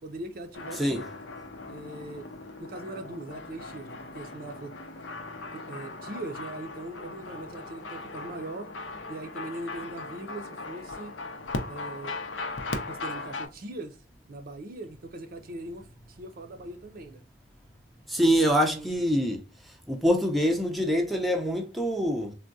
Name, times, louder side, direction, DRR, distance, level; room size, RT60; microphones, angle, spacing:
voice 1, 0.0-1.0 1.7-2.3 2.6-4.7 5.5-8.7 9.1-11.2 11.7-12.2 12.9-14.0 14.3-17.2 18.3-18.9, right 2 dB, 50° right, 0.5 m, -40 dB
sound 1, 0.5-13.5, left 3 dB, 90° left, 0.6 m, -38 dB
voice 2, 18.1-19.4 19.9-22.3, equal, ahead, 0.5 m, -25 dB
3.5 x 2.2 x 2.5 m
head